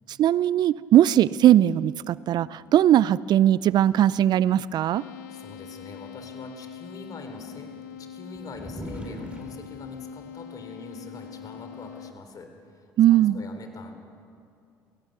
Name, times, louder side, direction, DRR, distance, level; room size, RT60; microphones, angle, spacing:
voice 1, 0.1-5.0 13.0-13.4, right 12 dB, 55° right, 20 dB, 0.4 m, -19 dB
sound 1, 4.9-12.1, left 9 dB, 85° left, 0.9 m, -43 dB
voice 2, 5.3-7.7 8.0-13.9, left 3 dB, 45° left, 6 dB, 3.9 m, -43 dB
sound 2, 8.3-9.4 10.6-10.7 11.4-11.9, right 1 dB, 15° right, 5.2 m, -39 dB
30.0 x 18.0 x 6.7 m, 2.5 s
hypercardioid pair, 65°, 9 cm